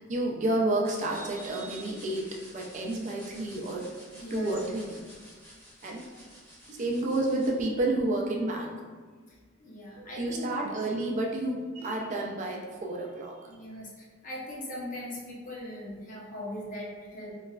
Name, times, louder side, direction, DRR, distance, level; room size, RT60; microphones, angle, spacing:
voice 1, 0.0-3.9 4.3-5.0 5.8-6.0 6.7-8.7 10.0-13.3, right 2 dB, 35° right, -1 dB, 0.3 m, -30 dB
sound 1, 0.8-7.5, equal, 10° left, 0.8 m, -51 dB
voice 2, 4.1-4.5 9.3-10.7 13.5-17.3, left 1 dB, 40° left, -4 dB, 0.7 m, -40 dB
3.0 x 2.2 x 2.3 m, 1.5 s
head